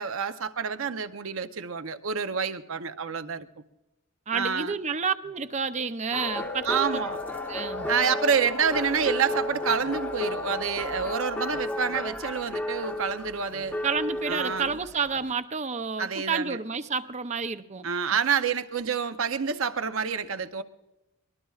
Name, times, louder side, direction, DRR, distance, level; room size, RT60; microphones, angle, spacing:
voice 1, 0.0-3.5 4.3-4.7 6.6-7.2 7.9-13.8 14.3-14.8 16.0-16.6 17.8-20.6, right 6 dB, 65° right, 0.7 m, -28 dB
voice 2, 4.3-7.0 7.5-7.9 13.8-17.9, right 5 dB, 30° right, 0.6 m, -30 dB
sound 1, 6.1-15.3, left 1 dB, 5° left, 0.9 m, -34 dB
sound 2, 6.2-11.6, left 4 dB, 45° left, 0.6 m, -38 dB
22.5 x 20.5 x 2.4 m
head